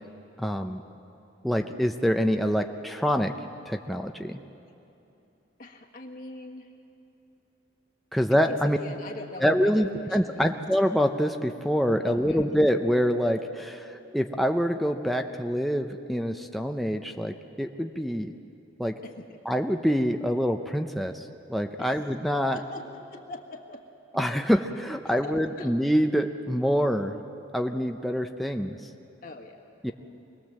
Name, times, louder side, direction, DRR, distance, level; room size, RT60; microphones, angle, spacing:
voice 1, 0.4-0.8 1.4-3.3 3.7-4.4 8.1-8.8 9.4-18.3 18.8-18.9 19.5-22.6 24.1-27.2 27.5-28.8 29.8-29.9, equal, ahead, 4 dB, 0.6 m, -26 dB
voice 2, 5.6-6.7 8.3-10.6 12.0-12.5 18.1-18.2 19.0-19.4 21.8-21.9 22.5-23.8 25.1-25.7 29.2-29.6 29.8-29.9, left 2 dB, 50° left, 0 dB, 1.5 m, -41 dB
25.0 x 19.5 x 7.5 m, 2.9 s
head